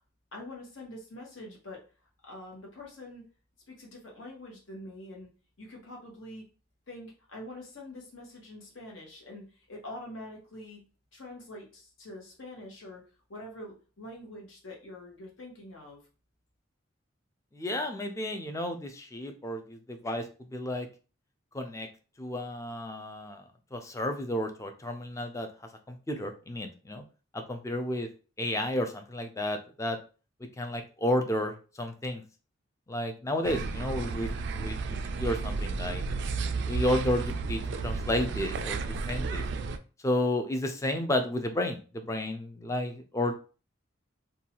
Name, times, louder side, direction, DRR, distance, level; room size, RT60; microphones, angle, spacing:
voice 1, 0.3-1.8 2.2-3.2 3.7-5.3 5.6-6.4 6.9-10.8 11.1-13.0 13.3-16.0, left 1 dB, 75° left, -1 dB, 1.1 m, -45 dB
voice 2, 17.5-20.3 20.5-20.9 21.5-21.9 22.2-23.4 23.7-25.5 25.9-27.0 27.3-28.1 28.4-30.0 30.6-32.2 32.9-36.0 36.7-38.8 39.1-39.4 40.0-43.3, left 1 dB, 15° left, 5 dB, 0.4 m, -32 dB
sound 1, 33.4-39.8, right 4 dB, 65° right, 0.3 m, -32 dB
2.6 x 2.3 x 2.9 m, 0.35 s
head